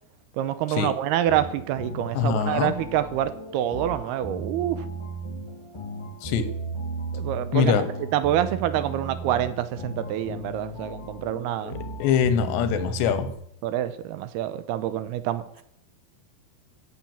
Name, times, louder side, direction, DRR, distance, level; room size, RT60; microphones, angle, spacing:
voice 1, 0.4-4.9 7.1-7.8 8.1-11.7 13.6-15.6, right 11 dB, 80° right, 13 dB, 2.6 m, -27 dB
sound 1, 1.3-13.3, right 2 dB, 25° left, 0.6 m, -36 dB
voice 2, 2.2-2.7 6.2-6.5 7.5-7.9 11.6-13.3, left 7 dB, 85° left, 11 dB, 3.4 m, -23 dB
15.5 x 7.4 x 7.3 m, 0.73 s
omnidirectional pair, 4.8 m